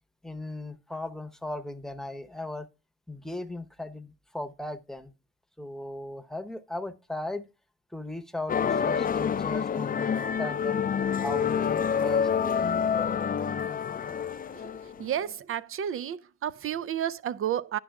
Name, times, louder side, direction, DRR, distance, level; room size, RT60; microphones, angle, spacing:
voice 1, 0.2-2.7 3.1-5.1 5.6-7.4 7.9-10.8 11.2-12.6 13.0-13.1, left 1 dB, ahead, 0.9 m, -37 dB
sound 1, 8.5-15.0, left 7 dB, 30° left, 0.5 m, -27 dB
voice 2, 15.0-17.8, right 10 dB, 45° right, 0.4 m, -31 dB
10.0 x 6.0 x 3.5 m
cardioid pair, 90°, 30 cm